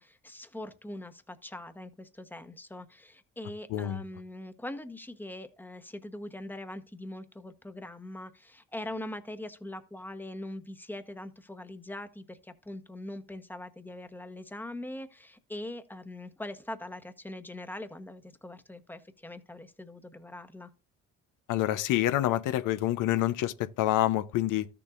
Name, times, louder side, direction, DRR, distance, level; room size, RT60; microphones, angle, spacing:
voice 1, 0.0-20.7, left 1 dB, 5° left, 0.9 m, -42 dB
voice 2, 21.5-24.7, left 14 dB, 90° left, 0.6 m, -27 dB
13.5 x 6.9 x 2.4 m
cardioid pair, 90°, 30 cm